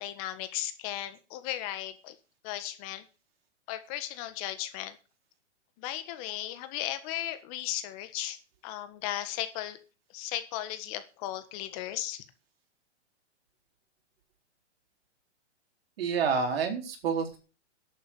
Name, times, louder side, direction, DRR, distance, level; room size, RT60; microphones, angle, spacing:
voice 1, 0.0-2.1 2.4-3.0 3.7-5.0 5.8-8.4 8.6-9.8 10.1-12.2, left 13 dB, 30° left, 10 dB, 1.5 m, -36 dB
voice 2, 16.0-17.4, right 5 dB, 55° right, 4 dB, 4.1 m, -28 dB
12.0 x 8.1 x 7.0 m, 0.35 s
hypercardioid pair, 155°, 35 cm